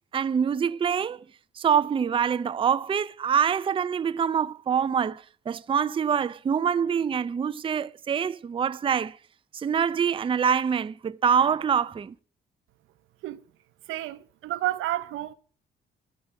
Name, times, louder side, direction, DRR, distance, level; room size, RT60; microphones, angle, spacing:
voice 1, 0.1-1.2 1.6-9.2 9.5-12.1, right 7 dB, 25° right, 0.4 m, -25 dB
voice 2, 13.9-15.3, right 15 dB, 85° right, 0.7 m, -30 dB
10.0 x 5.4 x 7.0 m
cardioid pair, 90°, 20 cm